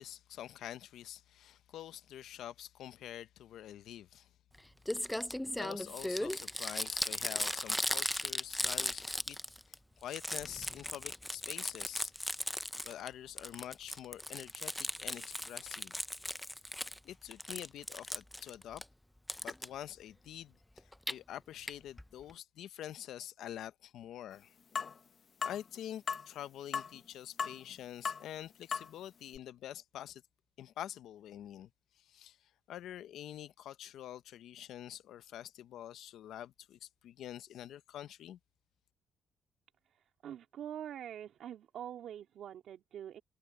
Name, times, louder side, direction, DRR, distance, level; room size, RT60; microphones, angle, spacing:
voice 1, 0.0-4.3 5.6-9.4 9.7-12.1 12.8-16.0 17.0-18.8 19.4-24.5 25.4-30.2 30.6-31.7 31.9-38.4, left 11 dB, 80° left, 0.8 m, -46 dB
Crumpling crinkling, 4.5-4.6 4.8-9.7 10.0-13.1 13.4-17.0 17.3-18.8 19.3-19.7 20.8-21.1 21.7-21.8 22.0-22.1 22.3-22.4, left 1 dB, 5° left, 0.7 m, -37 dB
sound 1, 24.8-25.0 25.4-25.6 26.1-26.3 26.7-27.0 27.4-27.7 28.1-28.2 28.7-28.9 29.4-29.5, left 6 dB, 45° left, 1.2 m, -36 dB
voice 2, 39.9-43.2, right 10 dB, 70° right, 2.5 m, -45 dB
cardioid pair, 90°, 0 cm